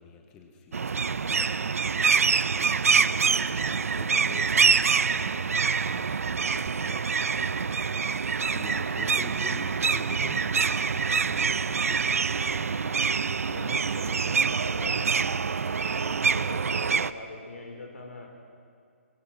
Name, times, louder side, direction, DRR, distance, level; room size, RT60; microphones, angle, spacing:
voice 1, 0.0-1.7 2.4-7.0 8.5-12.7 16.0-16.3, left 5 dB, 10° left, 3 dB, 0.8 m, -47 dB
sound 1, 0.7-17.1, right 5 dB, 85° right, 0.7 m, -25 dB
voice 2, 13.4-15.1 16.0-18.3, left 2 dB, 75° left, 2 dB, 5.2 m, -42 dB
23.0 x 22.5 x 6.3 m, 2.2 s
hypercardioid pair, 180°, 8 cm